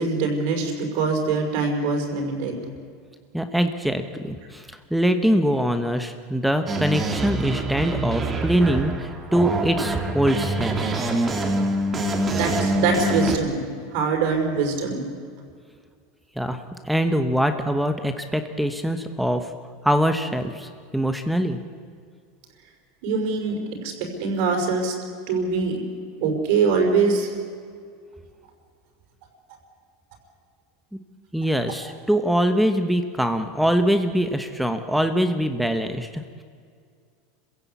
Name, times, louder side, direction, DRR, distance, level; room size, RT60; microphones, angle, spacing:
voice 1, 0.0-2.6 12.3-13.7 13.9-15.0 23.0-23.6 23.8-23.9 24.2-24.9 25.3-25.8 26.2-27.3, right 4 dB, 60° right, 3 dB, 5.7 m, -23 dB
voice 2, 3.3-10.8 16.4-19.5 19.8-21.6 31.3-36.2, equal, ahead, 7 dB, 1.1 m, -23 dB
sound 1, 6.7-13.4, right 1 dB, 20° right, 2.5 m, -25 dB
26.0 x 16.5 x 8.4 m, 2.1 s
supercardioid pair, 145°, 0 cm